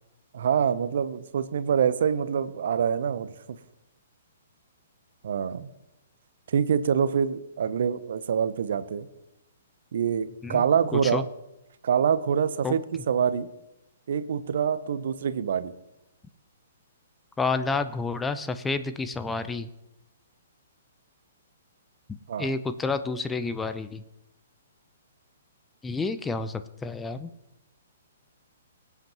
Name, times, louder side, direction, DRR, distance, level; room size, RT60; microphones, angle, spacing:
voice 1, 0.3-3.3 5.2-5.7 6.5-9.1 9.9-11.2 11.8-13.5 14.1-15.7 22.3-22.5, right 7 dB, 60° right, 14 dB, 0.7 m, -25 dB
voice 2, 10.9-11.2 12.6-12.7 17.4-19.7 22.4-24.0 25.8-27.3, left 3 dB, 10° left, 11 dB, 0.6 m, -29 dB
23.5 x 8.1 x 3.0 m, 0.91 s
figure-of-eight pair, 120°, 0 cm